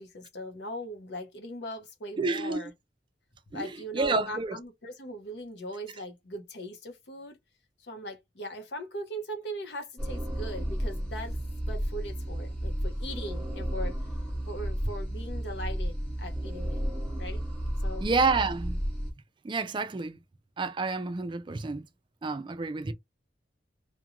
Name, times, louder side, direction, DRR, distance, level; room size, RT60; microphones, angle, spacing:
voice 1, 0.0-2.7 3.5-7.4 7.8-11.4 11.7-14.0 14.5-16.8 17.2-17.4 17.8-18.0, equal, 70° left, 0.7 m, -39 dB
voice 2, 2.2-2.7 3.5-3.7 3.9-4.6 18.0-18.8 19.4-20.2 20.6-21.8 22.2-22.9, right 3 dB, 25° right, 0.3 m, -29 dB
sound 1, 10.0-19.1, equal, 5° left, 0.7 m, -32 dB
2.4 x 2.2 x 2.9 m
head